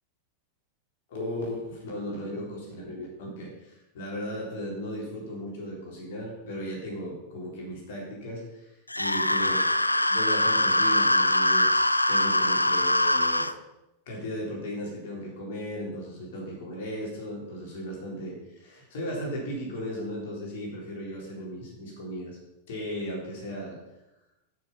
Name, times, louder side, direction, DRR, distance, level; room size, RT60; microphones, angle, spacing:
voice 1, 1.1-9.5 9.9-13.5 14.1-18.3 18.6-22.4 22.7-23.8, equal, 55° left, -2 dB, 3.9 m, -36 dB
sound 1, 8.9-13.5, left 1 dB, 85° left, 0.4 m, -23 dB
13.0 x 6.4 x 5.7 m, 0.93 s
figure-of-eight pair, 90°, 0 cm